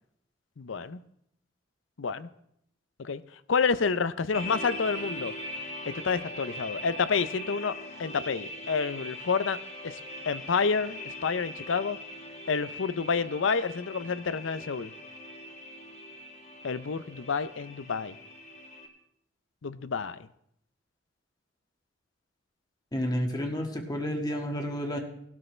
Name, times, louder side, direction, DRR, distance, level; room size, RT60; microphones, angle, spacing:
voice 1, 0.6-1.0 2.0-2.3 3.0-3.2 3.5-5.3 5.9-9.6 9.8-10.0 10.3-12.0 12.5-14.9 16.6-18.1 19.6-20.2, left 5 dB, 90° left, 15 dB, 0.6 m, -29 dB
sound 1, 4.3-18.9, left 1 dB, 40° left, 2.3 m, -41 dB
voice 2, 22.9-25.0, equal, 20° left, 3 dB, 1.6 m, -30 dB
19.0 x 12.0 x 3.3 m, 0.74 s
head